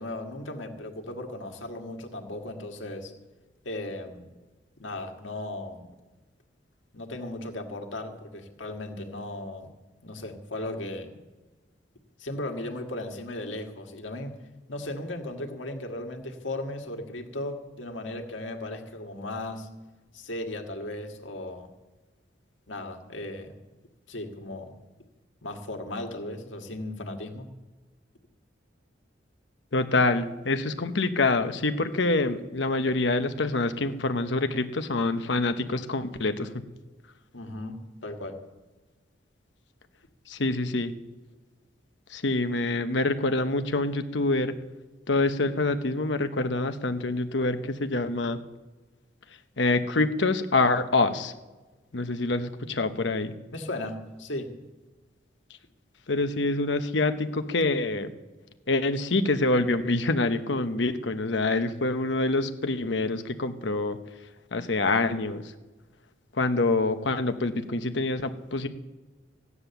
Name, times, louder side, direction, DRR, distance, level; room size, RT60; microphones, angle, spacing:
voice 1, 0.0-3.1 3.6-4.3 4.8-5.9 6.9-9.7 10.0-11.1 12.2-14.4 14.7-19.7 20.1-21.7 22.7-23.5 24.1-24.7 25.4-27.5 37.3-38.4 53.5-54.5, left 1 dB, 90° left, 4 dB, 1.8 m, -36 dB
voice 2, 29.7-36.5 40.3-40.9 42.1-44.5 45.1-48.4 49.6-51.3 51.9-53.3 56.1-58.1 58.7-64.0 64.5-65.5 66.3-68.7, left 2 dB, 70° left, 8 dB, 1.0 m, -26 dB
15.0 x 9.7 x 7.0 m, 1.2 s
head